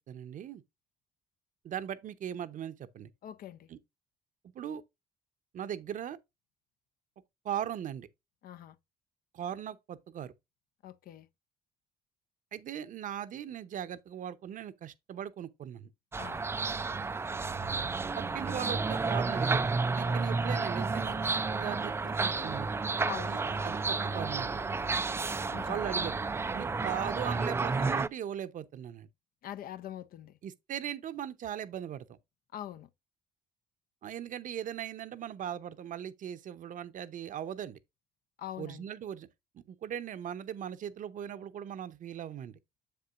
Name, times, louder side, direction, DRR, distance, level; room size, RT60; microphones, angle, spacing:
voice 1, 0.1-0.6 1.6-3.1 3.7-3.8 4.5-4.8 5.5-6.2 7.4-8.1 9.3-10.3 12.5-15.9 18.2-22.7 23.3-24.6 25.7-26.2 26.5-29.1 30.4-32.2 34.0-37.8 38.6-39.3 39.7-42.6, right 10 dB, 50° right, 0.8 m, -39 dB
voice 2, 3.2-3.7 8.4-8.8 10.8-11.3 16.2-16.4 20.0-20.4 23.0-23.3 25.5-25.7 29.4-30.3 32.5-32.9 38.4-38.9, left 12 dB, 60° left, 0.6 m, -43 dB
sound 1, 16.1-28.1, right 4 dB, 15° right, 0.3 m, -31 dB
sound 2, 20.1-27.8, left 7 dB, 80° left, 1.2 m, -55 dB
7.3 x 6.9 x 2.4 m
cardioid pair, 110°, 17 cm